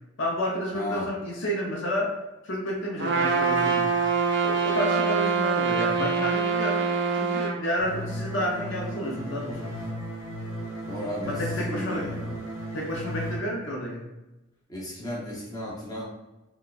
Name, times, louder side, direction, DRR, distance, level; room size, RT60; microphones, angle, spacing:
voice 1, 0.2-2.1 2.4-4.0 4.4-6.9 7.1-9.8 11.3-12.1 12.7-14.1, equal, 60° left, -2 dB, 0.6 m, -30 dB
voice 2, 0.7-1.1 10.9-12.4 14.7-16.0, left 1 dB, 20° left, -5 dB, 0.8 m, -35 dB
Trumpet, 3.0-7.6, right 5 dB, 55° right, 0.5 m, -24 dB
sound 1, 7.8-13.4, equal, 80° left, 1.1 m, -35 dB
4.1 x 2.2 x 2.4 m, 1.0 s
head